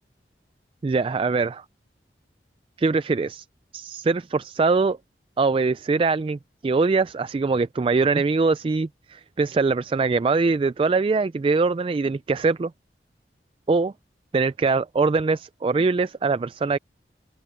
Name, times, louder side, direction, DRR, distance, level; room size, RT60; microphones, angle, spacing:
voice 1, 0.8-1.6 2.8-3.4 3.7-5.0 5.4-12.7 13.7-13.9 14.3-16.8, right 4 dB, 30° right, 0.3 m, -22 dB
open air
head